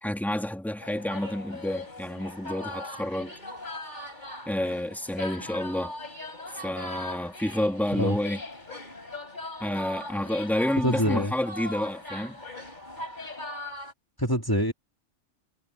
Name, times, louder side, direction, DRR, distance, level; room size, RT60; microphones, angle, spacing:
voice 1, 0.0-3.3 4.5-5.9 6.6-8.4 9.6-12.4, left 1 dB, ahead, 2.9 m, -29 dB
sound 1, 0.8-13.9, left 1 dB, 40° left, 5.1 m, -39 dB
voice 2, 10.8-11.3 14.2-14.7, equal, 15° left, 2.5 m, -25 dB
omnidirectional pair, 1.2 m